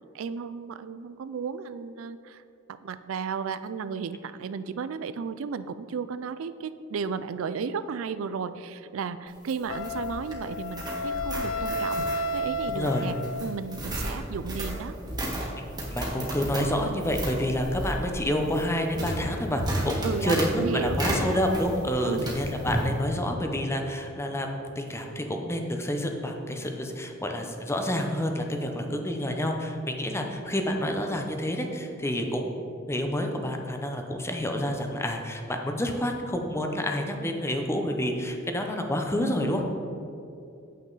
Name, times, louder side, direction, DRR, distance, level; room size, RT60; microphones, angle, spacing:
voice 1, 0.1-2.4 2.7-14.9 20.0-21.4 22.0-22.4, right 6 dB, 80° right, 13 dB, 0.4 m, -34 dB
sound 1, 9.3-21.9 22.2-22.9, right 1 dB, 20° right, 1.7 m, -33 dB
Wind instrument woodwind instrument, 9.7-13.7, left 1 dB, 75° left, 0.5 m, -32 dB
voice 2, 12.7-13.1 15.6-15.7 15.9-32.6 32.9-39.7, equal, 15° left, 4 dB, 0.7 m, -29 dB
9.0 x 7.8 x 4.0 m, 2.7 s
head